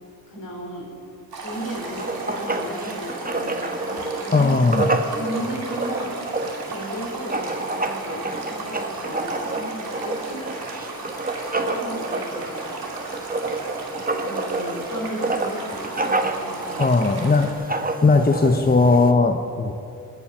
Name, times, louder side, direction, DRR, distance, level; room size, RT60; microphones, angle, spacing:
voice 1, 0.3-0.9 1.4-4.5 5.1-6.2 6.7-10.4 11.5-12.8 14.2-16.9, equal, 70° left, -2 dB, 4.8 m, -35 dB
Stream, 1.3-17.5, right 3 dB, 90° right, 2.4 m, -35 dB
Writing, 1.5-19.1, right 2 dB, 25° right, 1.3 m, -29 dB
voice 2, 4.3-5.0 16.8-17.5 18.0-19.7, left 3 dB, 25° left, 5 dB, 0.9 m, -18 dB
22.0 x 9.0 x 6.1 m, 2.6 s
cardioid pair, 60°, 36 cm